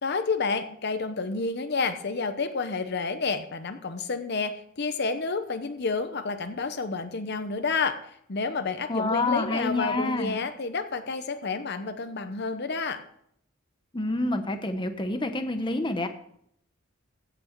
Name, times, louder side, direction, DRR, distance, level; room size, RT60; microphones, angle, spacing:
voice 1, 0.0-8.0 8.3-13.0, left 4 dB, 50° left, 9 dB, 0.8 m, -30 dB
voice 2, 8.9-10.4 13.9-16.1, left 2 dB, 25° left, 7 dB, 0.9 m, -27 dB
16.0 x 6.1 x 4.5 m, 0.68 s
head